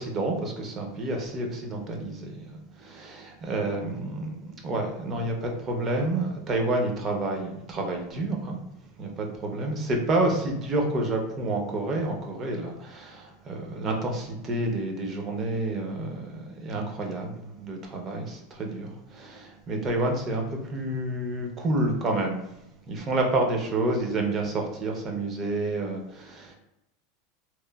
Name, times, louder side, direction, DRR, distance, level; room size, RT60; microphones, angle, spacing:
voice 1, 0.0-8.6 9.0-22.4 22.9-26.5, right 2 dB, 30° right, 2 dB, 0.5 m, -29 dB
2.9 x 2.0 x 2.2 m, 0.88 s
supercardioid pair, 135°, 0 cm